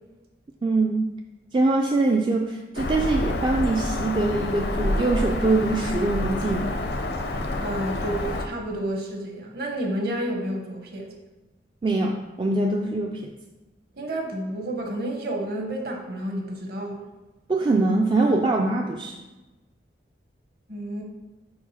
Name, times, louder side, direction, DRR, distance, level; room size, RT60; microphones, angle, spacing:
voice 1, 0.6-1.1 1.5-6.8 11.8-13.3 17.5-19.2, right 2 dB, 25° right, 1 dB, 0.3 m, -23 dB
Bird vocalization bird call bird song, 2.8-8.5, left 2 dB, 60° left, 0.6 m, -28 dB
voice 2, 7.6-11.1 13.9-17.0 20.7-21.0, right 1 dB, 55° right, 2 dB, 1.1 m, -30 dB
4.8 x 4.2 x 5.5 m, 1.1 s
head